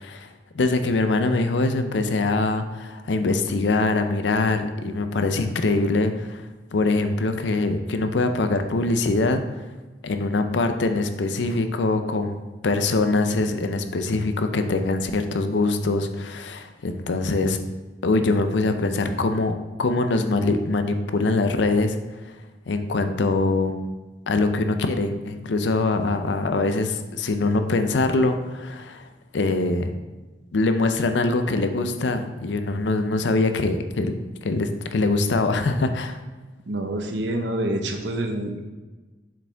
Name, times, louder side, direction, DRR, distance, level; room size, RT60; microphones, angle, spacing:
voice 1, 0.0-6.4 6.7-9.4 10.0-12.4 12.6-17.6 18.0-22.0 22.7-23.8 24.3-29.9 30.5-34.2 34.4-36.2, left 3 dB, 85° left, 8 dB, 0.5 m, -23 dB
voice 2, 36.7-38.6, right 1 dB, 85° right, 4 dB, 0.9 m, -27 dB
7.2 x 5.0 x 3.4 m, 1.2 s
head